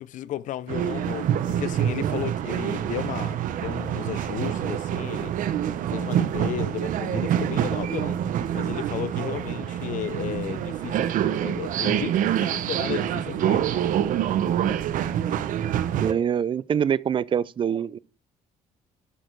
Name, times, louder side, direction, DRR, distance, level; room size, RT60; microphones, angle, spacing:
voice 1, 0.0-5.5 5.8-8.2 8.5-11.1 11.4-13.9, left 12 dB, 65° left, 0.6 m, -34 dB
sound 1, 0.7-16.1, right 10 dB, 75° right, 0.9 m, -26 dB
voice 2, 16.0-18.0, right 8 dB, 35° right, 0.4 m, -24 dB
11.0 x 6.7 x 4.5 m
cardioid pair, 115°, 14 cm